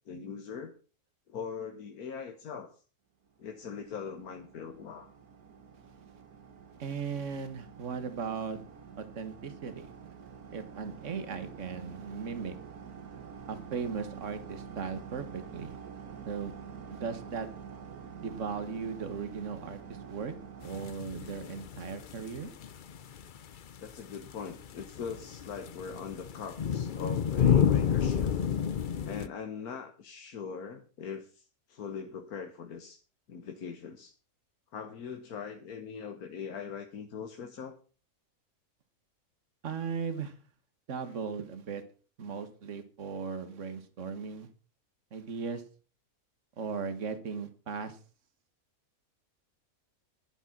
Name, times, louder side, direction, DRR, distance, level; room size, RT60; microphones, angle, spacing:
voice 1, 0.1-0.7 1.3-2.8 3.4-5.1 23.8-28.3 29.0-33.0 33.3-34.1 34.7-37.8, left 6 dB, 90° left, 5 dB, 1.7 m, -41 dB
sound 1, 3.4-20.9, right 6 dB, 85° right, 2.2 m, -47 dB
voice 2, 6.8-8.6 9.0-9.9 10.5-12.6 13.5-15.8 16.3-16.5 16.9-17.5 18.2-20.3 20.6-22.5 39.6-40.3 40.9-41.8 42.2-44.5 45.1-45.6 46.6-48.0, right 5 dB, 55° right, 11 dB, 1.8 m, -37 dB
sound 2, 20.6-29.3, left 8 dB, 50° left, 0.6 m, -30 dB
11.0 x 10.0 x 6.1 m, 0.38 s
omnidirectional pair, 1.5 m